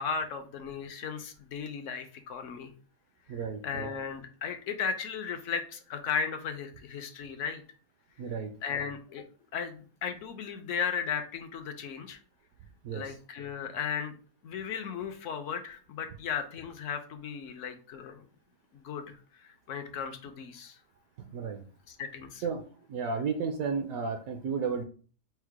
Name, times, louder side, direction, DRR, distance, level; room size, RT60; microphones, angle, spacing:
voice 1, 0.0-2.7 3.3-7.6 8.6-9.2 9.5-12.2 12.9-14.2 14.4-18.2 18.7-20.8 21.9-22.5, left 6 dB, 65° left, 7 dB, 0.8 m, -36 dB
voice 2, 3.3-3.9 8.2-8.5 12.8-13.0 21.3-21.6 22.4-24.8, right 5 dB, 70° right, 5 dB, 1.0 m, -33 dB
4.5 x 2.1 x 4.6 m, 0.40 s
omnidirectional pair, 1.7 m